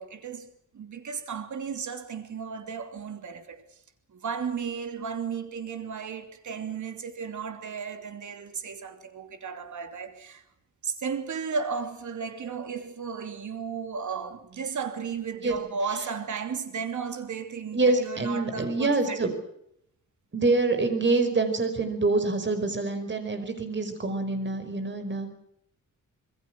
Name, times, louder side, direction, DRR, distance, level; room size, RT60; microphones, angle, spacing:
voice 1, 0.0-3.6 4.1-10.4 10.8-19.3, right 6 dB, 65° right, 3.1 m, -34 dB
voice 2, 17.7-19.3 20.3-25.3, right 3 dB, 35° right, 5.2 m, -26 dB
26.5 x 21.5 x 6.1 m
wide cardioid pair, 145°, 32 cm